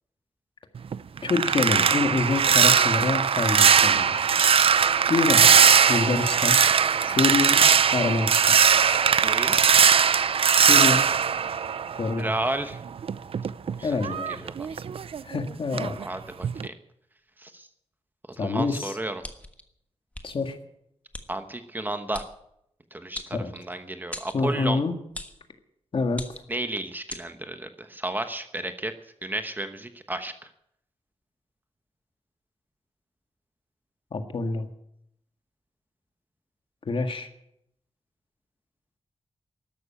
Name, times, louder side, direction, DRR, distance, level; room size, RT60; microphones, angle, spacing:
sound 1, 0.8-12.4 12.7-15.4 15.7-16.0 16.4-16.7, right 7 dB, 55° right, 0.5 m, -20 dB
voice 1, 1.2-4.2 5.1-5.5 5.9-6.6 7.0-7.6 7.9-8.6 10.5-11.1 12.0-12.3 13.8-14.5 15.2-16.0 18.4-19.0 20.2-20.6 23.3-23.5 24.3-24.9 25.9-26.3 34.1-34.7 36.9-37.3, left 3 dB, 50° left, 6 dB, 1.8 m, -26 dB
voice 2, 9.1-9.6 12.2-12.8 13.7-14.0 14.4-14.7 16.0-16.7 17.4-17.7 18.4-19.2 21.3-22.2 22.9-24.8 26.5-28.9 29.2-30.5, right 1 dB, 15° right, 8 dB, 1.0 m, -32 dB
sound 2, 19.2-19.6 20.1-20.3 21.1-21.3 22.1-22.3 23.1-23.7 24.1-24.4 25.1-25.4 26.1-26.6 27.1-27.3, left 1 dB, 10° left, 1.4 m, -38 dB
13.5 x 12.0 x 8.8 m, 0.75 s
wide cardioid pair, 150°, 11 cm